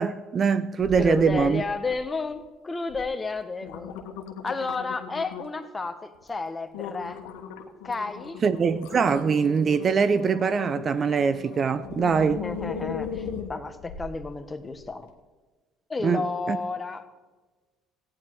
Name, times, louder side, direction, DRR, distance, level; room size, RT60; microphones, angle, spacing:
voice 1, 0.0-1.6 8.4-12.4 16.0-16.2 16.5-16.6, right 6 dB, 40° right, 0.5 m, -23 dB
sound 1, 0.8-1.5 1.8-2.3 2.9-3.0 3.4-5.7 6.2-6.3 6.7-14.2 14.7-14.8, left 6 dB, 90° left, 1.2 m, -38 dB
voice 2, 1.0-4.0 4.4-7.2 7.8-8.4 12.2-15.1 15.9-17.0, left 3 dB, 20° left, 1.2 m, -31 dB
14.5 x 9.8 x 4.7 m
supercardioid pair, 90°, 0 cm